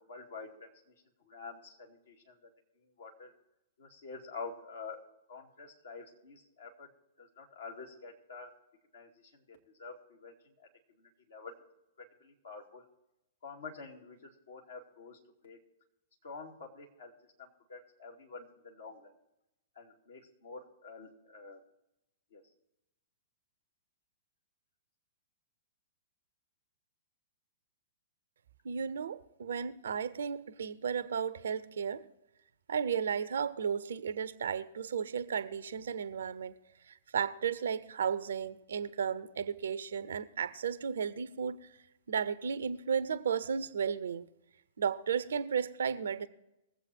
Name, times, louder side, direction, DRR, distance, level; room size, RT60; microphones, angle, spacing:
voice 1, 0.1-0.7 1.3-2.5 3.0-3.3 3.8-5.0 5.3-6.9 7.2-8.5 8.9-9.1 9.5-10.3 11.0-11.5 12.2-12.8 13.4-15.2 15.4-15.6 16.2-17.1 17.4-19.1 19.8-21.6 22.3-22.4, left 4 dB, 65° left, 2.5 m, -47 dB
voice 2, 28.6-32.0 32.7-36.5 36.9-41.7 42.1-44.3 44.8-46.3, right 7 dB, 65° right, 0.7 m, -34 dB
20.5 x 8.0 x 4.4 m
figure-of-eight pair, 105°, 0 cm